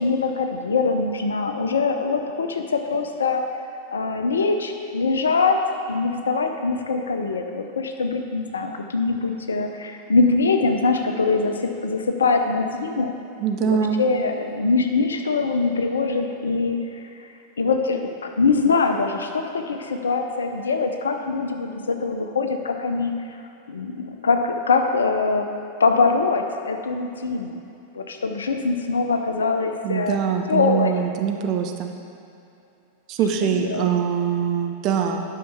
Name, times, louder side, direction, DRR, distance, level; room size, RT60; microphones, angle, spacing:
voice 1, 0.0-3.5 3.9-5.6 5.9-13.1 13.6-17.3 17.6-23.4 23.7-25.5 25.8-27.6 27.9-30.2 30.5-31.1 33.4-33.9, left 4 dB, 70° left, 5 dB, 0.7 m, -23 dB
voice 2, 13.4-14.1 29.8-31.9 33.1-35.2, right 8 dB, 40° right, 4 dB, 0.9 m, -23 dB
11.0 x 5.8 x 5.5 m, 2.7 s
figure-of-eight pair, 90°, 0 cm